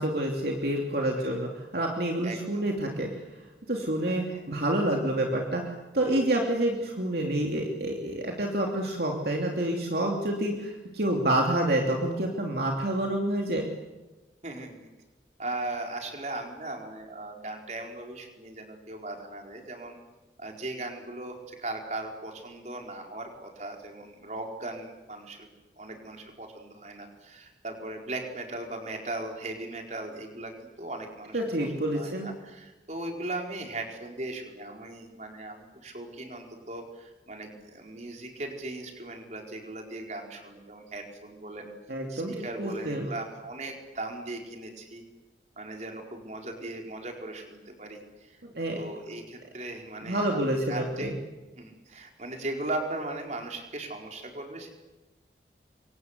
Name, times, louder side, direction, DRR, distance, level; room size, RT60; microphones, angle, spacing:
voice 1, 0.0-3.1 3.7-13.7 31.3-32.3 41.9-43.1 48.5-48.8 50.0-51.1, right 1 dB, 60° right, 1 dB, 3.0 m, -28 dB
voice 2, 2.2-2.8 4.1-4.5 14.4-14.9 15.4-20.0 20.4-31.4 31.8-41.7 42.1-45.0 45.6-48.4 48.7-51.1 51.5-54.7, right 2 dB, 40° right, 2 dB, 4.5 m, -38 dB
27.5 x 24.0 x 8.2 m, 1.1 s
head